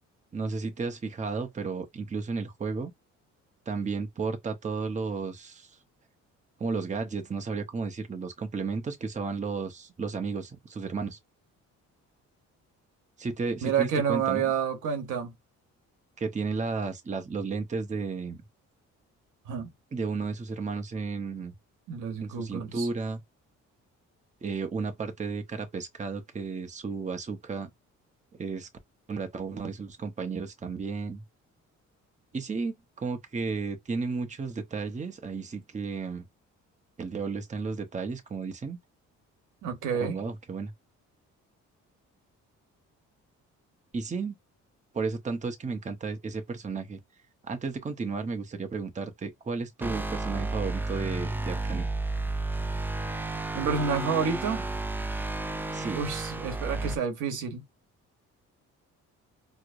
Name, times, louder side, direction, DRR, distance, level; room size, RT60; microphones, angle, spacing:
voice 1, 0.3-2.9 3.7-5.7 6.6-11.2 13.2-14.5 16.2-18.4 19.9-21.5 22.2-23.2 24.4-27.7 28.4-28.7 29.1-31.2 32.3-36.2 37.0-38.8 40.0-40.7 43.9-44.4 44.9-47.0 47.4-51.9 55.7-56.0, right 4 dB, 25° right, 0.7 m, -33 dB
voice 2, 13.6-15.3 19.5-19.7 21.9-22.9 39.6-40.2 53.5-54.7 55.9-57.6, right 6 dB, 85° right, 1.0 m, -29 dB
sound 1, 49.8-57.0, right 2 dB, 5° right, 0.3 m, -32 dB
4.4 x 2.0 x 2.5 m
cardioid pair, 90°, 30 cm